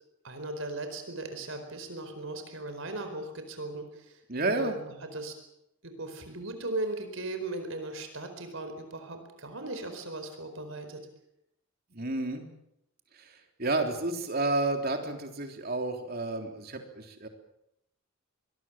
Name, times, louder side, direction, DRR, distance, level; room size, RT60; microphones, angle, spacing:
voice 1, 0.2-4.2 4.6-5.3 5.8-11.0, right 2 dB, 70° right, 7 dB, 4.6 m, -38 dB
voice 2, 4.3-4.8 11.9-12.4 13.1-17.3, right 2 dB, 45° right, 4 dB, 3.5 m, -31 dB
25.5 x 21.0 x 7.4 m, 0.81 s
head